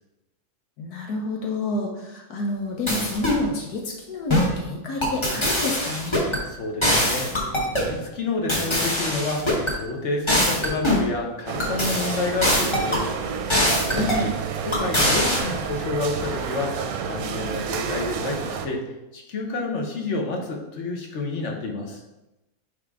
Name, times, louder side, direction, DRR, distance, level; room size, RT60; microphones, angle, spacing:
voice 1, 0.8-6.3 13.9-14.3, left 2 dB, 80° left, 0 dB, 1.5 m, -29 dB
sound 1, 2.9-3.4 4.3-4.6 5.0-6.4 6.8-7.9 8.5-9.7 10.3-11.1 11.6-13.0 13.5-14.2 14.7-15.4, left 1 dB, 20° left, 1.0 m, -23 dB
voice 2, 6.5-7.3 7.7-13.2 13.9-14.4 14.6-18.8 19.1-22.0, left 3 dB, 50° left, 1 dB, 1.2 m, -29 dB
sound 2, 11.5-18.7, right 6 dB, 70° right, 1.0 m, -30 dB
9.0 x 3.3 x 3.6 m, 0.97 s
omnidirectional pair, 1.7 m